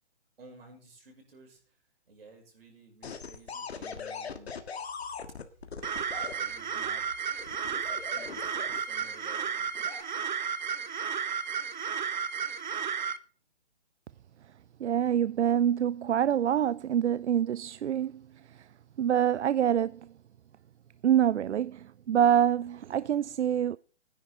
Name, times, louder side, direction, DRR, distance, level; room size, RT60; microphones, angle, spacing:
voice 1, 0.4-1.7 2.1-4.6 5.3-5.6 6.1-7.0 7.6-9.7 10.9-11.0 14.1-14.2, right 2 dB, 60° right, 6.0 m, -53 dB
sound 1, 3.0-6.3 7.4-9.0 9.7-10.0, left 6 dB, 65° left, 1.7 m, -40 dB
sound 2, 5.8-13.2, right 7 dB, 45° right, 0.7 m, -33 dB
voice 2, 14.8-18.7 19.0-20.0 21.0-23.8, right 10 dB, 85° right, 0.5 m, -26 dB
17.0 x 10.0 x 3.7 m
hypercardioid pair, 165°, 34 cm